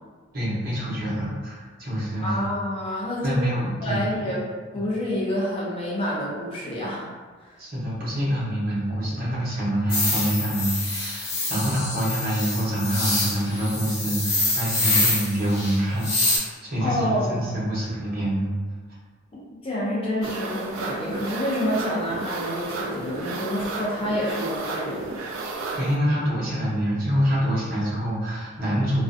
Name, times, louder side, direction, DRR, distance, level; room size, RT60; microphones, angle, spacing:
voice 1, 0.3-2.5 3.2-4.3 7.6-18.5 25.4-29.0, equal, 45° right, -7 dB, 0.8 m, -26 dB
voice 2, 2.2-3.4 3.8-4.5 4.7-7.1 7.4-7.5 16.8-17.4 19.6-25.2, equal, 25° left, -6 dB, 0.4 m, -28 dB
sound 1, 9.9-16.4, left 2 dB, 55° left, 0.9 m, -26 dB
breath fix, 20.2-26.0, right 3 dB, 80° right, 0.3 m, -32 dB
2.4 x 2.1 x 2.5 m, 1.4 s
head